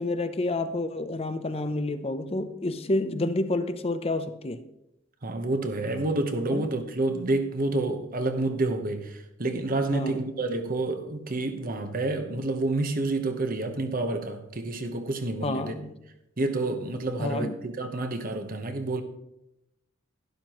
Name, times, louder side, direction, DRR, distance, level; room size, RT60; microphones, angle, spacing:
voice 1, 0.0-4.6 6.5-6.7 9.9-10.3 15.4-15.9 17.2-17.6, left 2 dB, 30° left, 0.6 m, -29 dB
voice 2, 5.2-15.8 16.4-19.0, right 2 dB, 45° right, 1.0 m, -29 dB
12.0 x 11.5 x 3.0 m
head